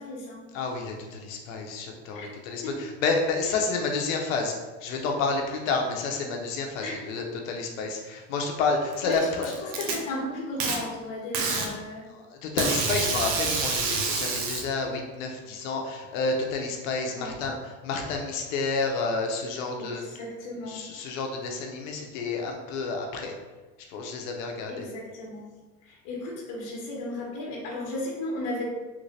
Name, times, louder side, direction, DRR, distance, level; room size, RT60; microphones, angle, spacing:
voice 1, 0.0-0.5 2.1-2.3 2.6-2.9 6.8-7.0 9.0-12.1 17.1-17.3 19.8-20.8 24.7-25.5 25.8-28.6, left 1 dB, 55° left, -2 dB, 1.2 m, -35 dB
voice 2, 0.5-4.5 4.8-9.7 12.1-20.0 20.6-23.3 23.9-24.9, left 4 dB, 85° left, 2 dB, 0.8 m, -30 dB
Packing tape duct tape, 8.9-9.9 10.6-10.8 11.3-11.7 12.6-14.6, right 4 dB, 75° right, 0.8 m, -27 dB
3.3 x 2.6 x 3.2 m, 1.3 s
supercardioid pair, 130°, 39 cm